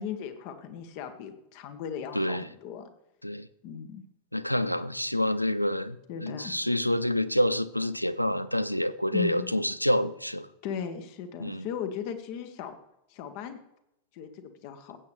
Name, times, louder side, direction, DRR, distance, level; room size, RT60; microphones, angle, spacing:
voice 1, 0.0-2.9 3.6-4.0 6.1-6.5 9.1-9.5 10.6-12.8 13.1-13.6 14.1-15.0, left 8 dB, 45° left, 8 dB, 1.4 m, -37 dB
voice 2, 2.1-2.5 3.2-3.5 4.3-10.5 11.4-11.7, left 1 dB, 90° left, 15 dB, 0.5 m, -27 dB
16.0 x 8.4 x 3.4 m, 0.84 s
figure-of-eight pair, 90°, 0 cm